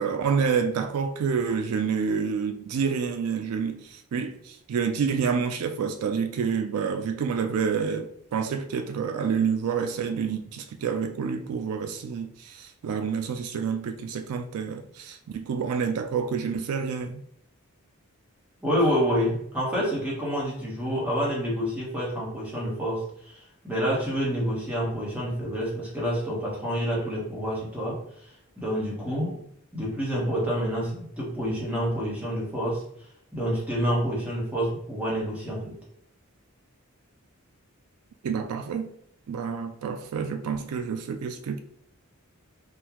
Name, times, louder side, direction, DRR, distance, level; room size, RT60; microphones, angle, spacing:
voice 1, 0.0-17.2 38.2-38.9 39.3-41.6, right 6 dB, 80° right, 0.3 m, -28 dB
voice 2, 18.6-29.4 29.7-32.8 33.3-35.8, equal, 5° right, 1.0 m, -28 dB
3.7 x 2.3 x 2.9 m
head